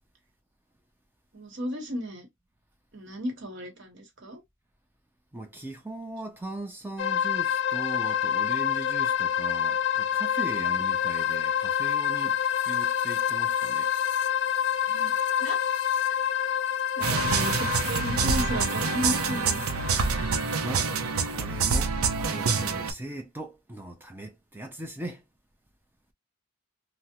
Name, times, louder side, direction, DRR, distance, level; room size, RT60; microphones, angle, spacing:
voice 1, 1.3-2.3 2.9-4.4 14.9-15.6 17.0-19.7, equal, 55° right, 1.0 m, -34 dB
voice 2, 5.3-13.9 20.6-20.9 21.2-25.2, right 2 dB, 10° right, 0.4 m, -39 dB
sound 1, 7.0-20.6, left 9 dB, 55° left, 0.3 m, -28 dB
sound 2, 17.0-22.9, right 5 dB, 90° right, 0.5 m, -26 dB
3.4 x 2.0 x 2.8 m
head